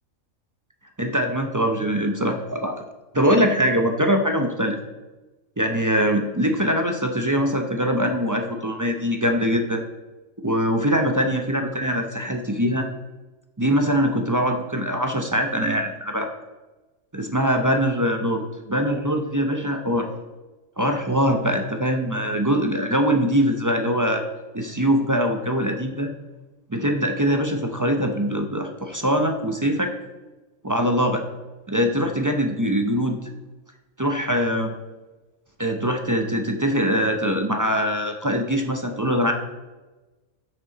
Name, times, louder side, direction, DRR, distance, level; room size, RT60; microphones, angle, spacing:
voice 1, 1.0-2.8 3.1-4.8 5.6-9.8 10.4-12.9 13.6-16.3 17.1-20.1 20.8-24.2 24.5-26.1 26.7-29.9 30.6-31.2 31.7-33.2 34.0-34.7 35.6-39.3, equal, 25° right, 4 dB, 0.4 m, -22 dB
15.0 x 5.2 x 4.1 m, 1.2 s
omnidirectional pair, 1.4 m